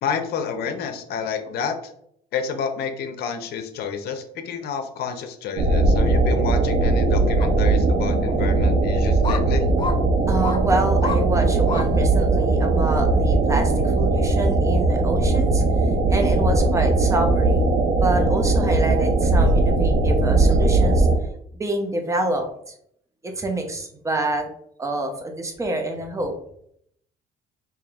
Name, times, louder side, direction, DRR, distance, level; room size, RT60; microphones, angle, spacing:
voice 1, 0.0-1.9 2.3-9.7, left 6 dB, 70° left, 7 dB, 0.7 m, -29 dB
sound 1, 5.6-21.2, right 2 dB, 55° right, 0.7 m, -19 dB
sound 2, 7.4-7.5 8.2-8.3 9.2-9.4 9.8-10.0 10.4-10.6 11.0-11.2 11.7-11.9 12.4-12.5, left 5 dB, 30° left, 0.4 m, -29 dB
voice 2, 10.3-15.6 16.1-21.1 21.5-22.7 23.2-24.5 24.8-26.3, right 1 dB, 20° right, 4 dB, 0.7 m, -27 dB
5.0 x 2.8 x 2.4 m, 0.69 s
cardioid pair, 110°, 17 cm